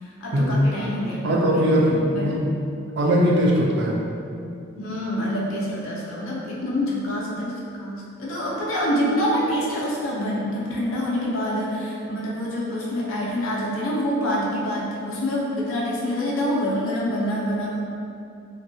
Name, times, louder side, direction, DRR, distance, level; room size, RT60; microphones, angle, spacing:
voice 1, 0.0-1.6 2.2-2.4 4.7-17.8, equal, 75° left, -5 dB, 0.5 m, -26 dB
voice 2, 1.2-2.5 3.0-4.0, equal, 55° right, -2 dB, 0.4 m, -20 dB
2.6 x 2.2 x 2.6 m, 2.6 s
head